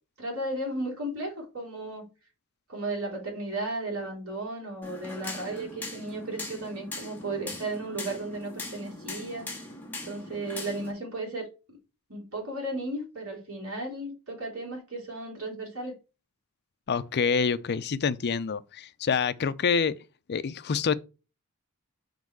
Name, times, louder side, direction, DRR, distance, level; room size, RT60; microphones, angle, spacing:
voice 1, 0.2-2.1 2.7-9.5 10.0-11.8 12.1-15.9, right 2 dB, 65° right, 3.1 m, -35 dB
sound 1, 4.8-10.9, left 2 dB, 10° left, 1.5 m, -40 dB
voice 2, 16.9-19.9 20.3-20.9, left 5 dB, 50° left, 0.5 m, -27 dB
5.3 x 4.0 x 4.6 m
head